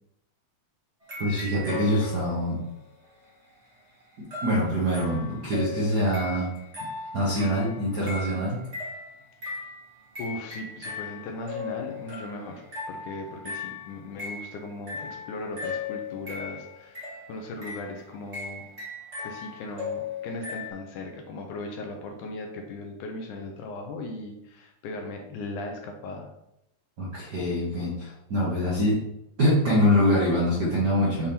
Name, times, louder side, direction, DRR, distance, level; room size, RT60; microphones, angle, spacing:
sound 1, 1.0-2.6 4.3-20.7, left 4 dB, 35° right, 1.0 m, -38 dB
voice 1, 1.2-2.6 4.4-6.5 7.1-8.6 27.0-29.1 29.4-31.3, equal, 70° right, -6 dB, 0.9 m, -24 dB
voice 2, 10.2-18.6 19.2-26.3, left 2 dB, 75° left, 3 dB, 2.0 m, -38 dB
7.2 x 3.6 x 4.3 m, 0.82 s
omnidirectional pair, 4.0 m